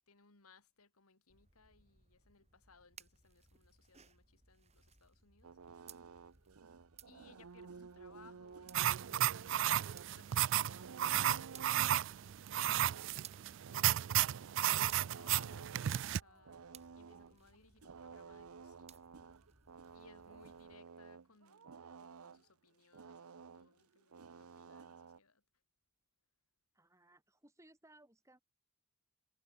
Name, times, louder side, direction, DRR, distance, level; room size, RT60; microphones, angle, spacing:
voice 1, 0.1-5.6 7.0-13.8 14.3-19.0 19.9-25.4, left 4 dB, 90° left, 2.6 m, -66 dB
sound 1, 1.3-20.7, right 7 dB, 30° right, 6.3 m, -63 dB
sound 2, 5.4-22.5 22.9-25.2, right 5 dB, 85° right, 0.7 m, -54 dB
sound 3, 8.7-16.2, right 12 dB, 55° right, 0.3 m, -33 dB
voice 2, 26.7-28.4, right 1 dB, 15° right, 3.8 m, -64 dB
head